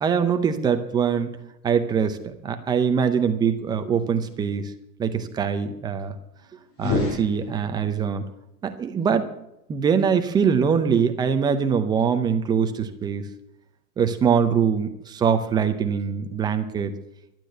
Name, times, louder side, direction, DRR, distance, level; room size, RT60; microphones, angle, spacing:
voice 1, 0.0-1.4 1.6-4.7 5.0-6.1 6.8-8.2 8.6-9.3 9.7-13.2 14.0-16.9, right 7 dB, 10° right, 8 dB, 0.6 m, -23 dB
sound 1, 6.7-8.0, left 3 dB, 45° left, 5.5 m, -28 dB
12.0 x 9.1 x 9.1 m, 0.84 s
hypercardioid pair, 145°, 46 cm